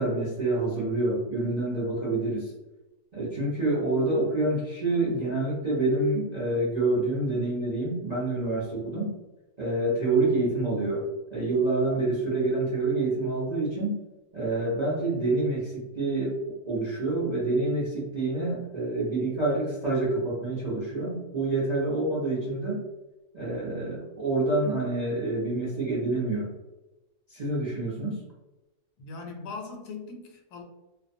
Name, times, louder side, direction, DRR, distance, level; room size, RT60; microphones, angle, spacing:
voice 1, 0.0-2.5 3.1-9.1 9.6-14.0 14.3-22.8 23.3-26.5 27.3-28.2, right 2 dB, 45° right, -8 dB, 0.5 m, -27 dB
voice 2, 29.0-30.6, left 4 dB, 85° left, 3 dB, 1.1 m, -40 dB
2.6 x 2.1 x 2.5 m, 1.0 s
omnidirectional pair, 1.7 m